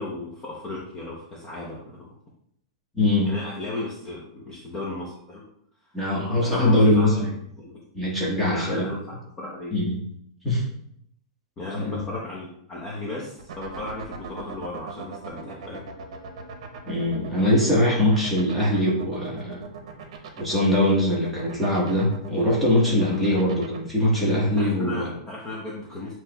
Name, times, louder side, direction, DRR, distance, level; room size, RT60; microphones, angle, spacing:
voice 1, 0.0-2.1 3.2-5.4 6.4-7.8 8.5-9.0 9.4-9.7 11.6-15.8 24.5-26.1, left 2 dB, 20° left, -4 dB, 0.7 m, -35 dB
voice 2, 2.9-3.3 5.9-7.3 7.9-8.9 9.7-10.0 10.4-10.6 11.7-12.0 16.8-19.6 20.4-25.1, left 1 dB, ahead, -7 dB, 1.2 m, -22 dB
sound 1, 13.4-23.8, right 6 dB, 65° right, 0.7 m, -39 dB
7.1 x 2.9 x 2.3 m, 0.70 s
supercardioid pair, 160°, 3 cm